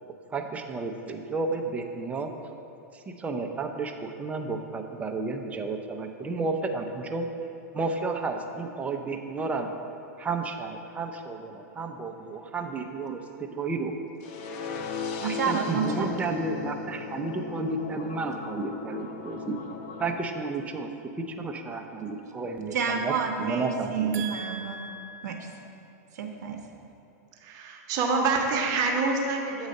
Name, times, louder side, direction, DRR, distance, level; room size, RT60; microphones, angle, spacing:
voice 1, 0.3-2.3 2.9-7.3 7.7-9.7 10.2-13.2 13.5-13.9 15.2-19.6 20.0-20.9 21.3-23.1 23.4-24.3, right 3 dB, 15° right, 4 dB, 0.5 m, -32 dB
sound 1, 14.2-20.2, left 6 dB, 50° left, 0.5 m, -36 dB
voice 2, 15.2-16.1 22.7-25.4 26.1-26.6, right 6 dB, 80° right, 3 dB, 0.7 m, -30 dB
voice 3, 27.4-29.7, right 3 dB, 40° right, 2 dB, 0.9 m, -26 dB
7.5 x 4.0 x 5.3 m, 2.7 s
hypercardioid pair, 125°, 9 cm